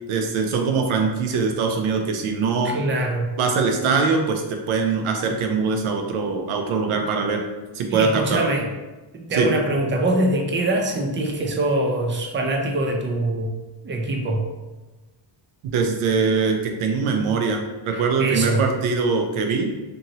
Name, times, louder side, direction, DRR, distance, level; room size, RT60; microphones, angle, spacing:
voice 1, 0.1-2.8 3.4-7.4 7.7-8.5 9.3-9.5 15.7-19.7, right 4 dB, 80° right, 3 dB, 0.6 m, -22 dB
voice 2, 2.6-3.3 3.8-4.0 7.9-8.7 9.1-13.5 13.8-14.5 17.9-18.6, right 1 dB, 25° right, 1 dB, 0.4 m, -23 dB
2.7 x 2.7 x 2.9 m, 1.2 s
cardioid pair, 120°, 49 cm